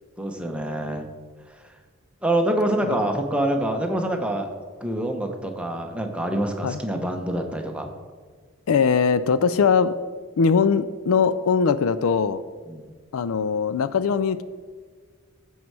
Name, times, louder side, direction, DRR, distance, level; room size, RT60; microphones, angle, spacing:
voice 1, 0.2-1.1 1.5-1.6 2.2-4.5 4.8-7.9 12.7-12.9, right 1 dB, 5° right, 3 dB, 0.8 m, -26 dB
voice 2, 8.7-9.9 10.4-12.4 13.1-14.4, left 5 dB, 75° left, 14 dB, 0.4 m, -21 dB
15.5 x 5.5 x 4.7 m, 1.5 s
head